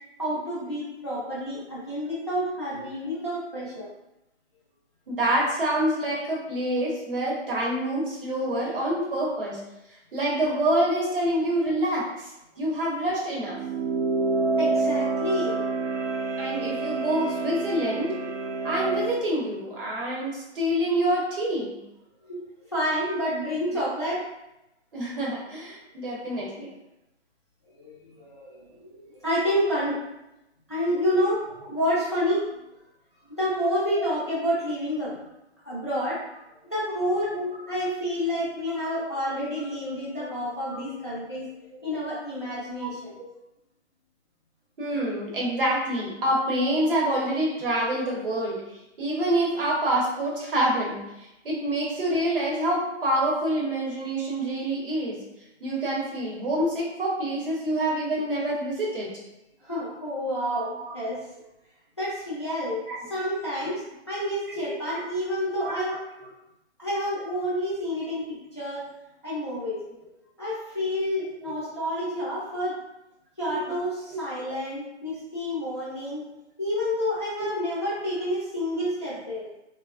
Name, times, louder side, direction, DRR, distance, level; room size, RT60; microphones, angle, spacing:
voice 1, 0.2-3.9 14.6-15.6 22.3-22.4 22.7-24.2 27.8-30.0 30.7-31.4 31.7-32.6 33.3-35.1 35.6-36.2 36.6-37.3 37.7-41.5 41.8-43.2 59.6-61.2 62.0-62.8 63.1-66.0 66.8-68.9 69.2-69.8 70.4-72.8 73.4-76.2 76.6-79.5, equal, 25° left, -8 dB, 0.3 m, -29 dB
voice 2, 5.1-9.6 10.1-13.6 16.4-18.1 18.6-21.8 24.9-26.7 37.3-37.4 38.4-38.8 40.2-40.3 40.7-40.8 42.8-42.9 44.8-48.6 49.0-55.2 55.6-59.1 60.8-60.9 62.9-63.0 63.6-63.7 64.5-64.8 65.5-65.8 71.4-71.5 73.5-73.7 74.1-74.2 77.4-77.5, right 1 dB, 50° right, -3 dB, 1.0 m, -27 dB
sound 1, 13.4-19.2, right 3 dB, 80° right, 0.5 m, -27 dB
3.3 x 2.1 x 2.3 m, 0.91 s
hypercardioid pair, 160°, 35 cm